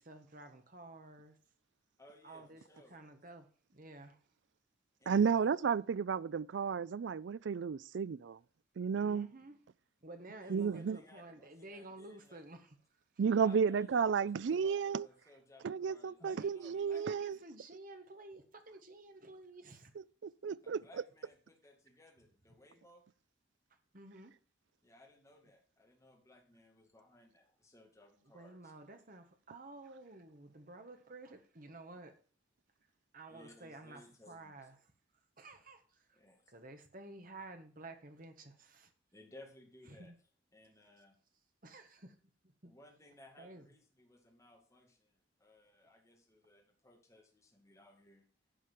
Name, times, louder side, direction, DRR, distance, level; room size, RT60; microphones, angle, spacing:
voice 1, 0.0-1.4 2.2-4.2 9.0-9.6 10.0-12.8 16.2-19.9 20.5-20.9 23.9-24.3 28.2-32.2 33.1-34.9 35.4-36.2 36.5-38.9 39.9-40.1 41.6-42.1 42.4-42.7 43.4-43.7, right 2 dB, 45° right, 1.4 m, -52 dB
voice 2, 2.0-3.0 5.0-5.4 10.4-12.4 13.4-17.3 20.6-23.1 24.8-28.7 33.3-34.5 36.1-36.5 39.1-40.1 40.5-41.2 42.6-48.3, left 1 dB, 15° left, 2.1 m, -61 dB
voice 3, 5.1-8.4 8.8-9.3 10.5-11.0 13.2-15.1 15.6-17.4 20.2-20.8, right 6 dB, 65° right, 0.4 m, -32 dB
10.0 x 4.9 x 7.5 m
head